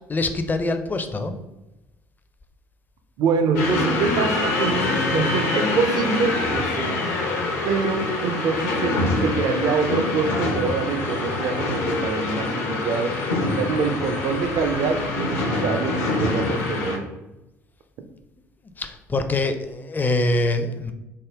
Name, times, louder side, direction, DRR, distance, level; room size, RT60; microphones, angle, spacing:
voice 1, 0.1-1.4 18.8-20.9, left 2 dB, 20° left, 8 dB, 0.4 m, -24 dB
voice 2, 3.2-6.9 7.7-13.1 13.5-17.1, right 5 dB, 55° right, 8 dB, 0.4 m, -25 dB
sound 1, 3.5-17.0, left 2 dB, 70° left, 0.6 m, -25 dB
3.5 x 2.1 x 3.4 m, 0.98 s
figure-of-eight pair, 55°, 8 cm